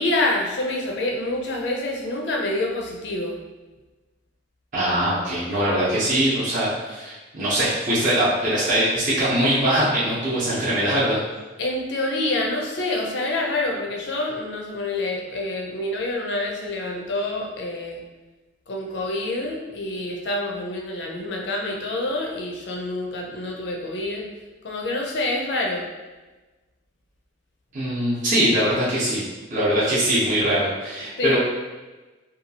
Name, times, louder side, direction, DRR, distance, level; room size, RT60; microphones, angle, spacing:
voice 1, 0.0-3.4 11.6-18.0 18.7-24.3 24.6-25.9 31.2-31.4, left 2 dB, 60° left, 0 dB, 0.5 m, -27 dB
voice 2, 4.7-11.2 27.7-29.2 29.5-31.4, right 1 dB, 40° right, -9 dB, 0.7 m, -22 dB
2.8 x 2.3 x 2.7 m, 1.2 s
head